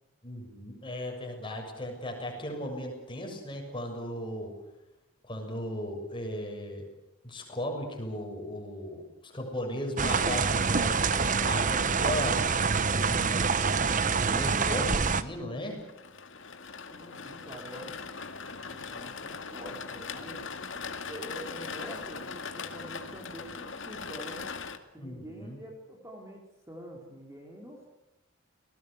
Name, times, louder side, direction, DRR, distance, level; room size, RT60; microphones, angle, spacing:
voice 1, 0.2-4.5 5.2-6.8 7.2-12.4 13.1-15.8 25.0-25.6, left 1 dB, 25° left, 2 dB, 7.1 m, -37 dB
sound 1, 10.0-15.2, right 5 dB, 35° right, 1.0 m, -26 dB
sound 2, 15.7-24.8, left 5 dB, 60° left, 2.2 m, -40 dB
voice 2, 16.9-20.5 21.1-24.5 24.9-27.9, equal, 15° right, 0 dB, 4.1 m, -46 dB
30.0 x 19.5 x 8.1 m, 0.89 s
head